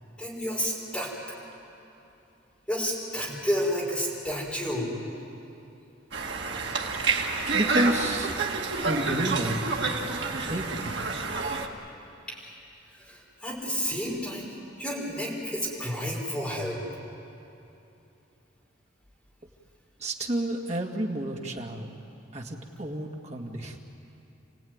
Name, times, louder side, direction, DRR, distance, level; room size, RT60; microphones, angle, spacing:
voice 1, 0.2-1.1 2.7-4.9 12.3-12.4 13.0-16.8, equal, 5° left, -4 dB, 5.6 m, -31 dB
Conversation, 6.1-11.7, right 4 dB, 65° right, 2.1 m, -28 dB
voice 2, 7.5-8.4 8.8-10.0 10.3-11.0 20.0-21.9 22.3-23.8, right 1 dB, 35° right, 1 dB, 2.1 m, -30 dB
29.0 x 17.5 x 9.6 m, 2.9 s
head